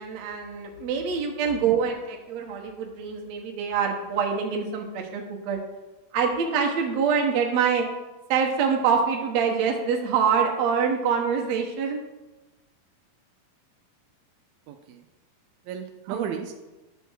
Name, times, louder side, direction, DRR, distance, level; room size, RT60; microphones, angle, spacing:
voice 1, 0.0-1.9 2.3-5.6 6.1-7.9 8.3-12.0 16.1-16.2, right 6 dB, 65° right, 1 dB, 1.8 m, -25 dB
voice 2, 14.7-15.1 15.7-16.7, right 8 dB, 80° right, 5 dB, 2.2 m, -34 dB
9.9 x 3.4 x 6.4 m, 1.1 s
omnidirectional pair, 4.1 m